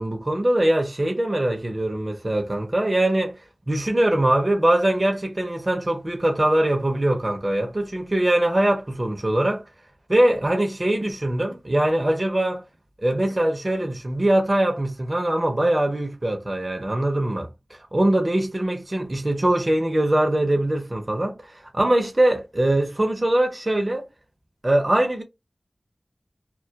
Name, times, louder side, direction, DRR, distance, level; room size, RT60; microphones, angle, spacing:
voice 1, 0.0-3.4 3.7-9.6 10.1-12.6 13.0-24.1 24.6-25.2, right 1 dB, 40° right, 0.5 m, -22 dB
2.2 x 2.1 x 2.7 m
wide cardioid pair, 45°, 0 cm